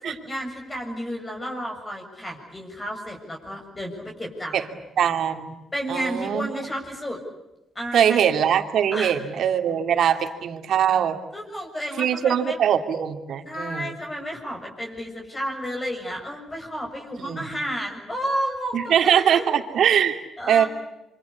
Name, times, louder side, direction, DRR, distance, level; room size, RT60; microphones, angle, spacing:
voice 1, 0.0-4.6 5.7-7.2 7.8-8.2 8.9-9.2 11.3-12.6 13.4-19.5 20.4-20.7, equal, 20° left, 1 dB, 7.2 m, -32 dB
voice 2, 5.0-5.5 5.9-6.5 7.9-11.2 12.0-13.9 17.2-17.4 18.7-20.2 20.5-20.6, right 9 dB, 70° right, 7 dB, 2.7 m, -22 dB
26.5 x 25.5 x 8.5 m, 0.95 s
cardioid pair, 90°, 0 cm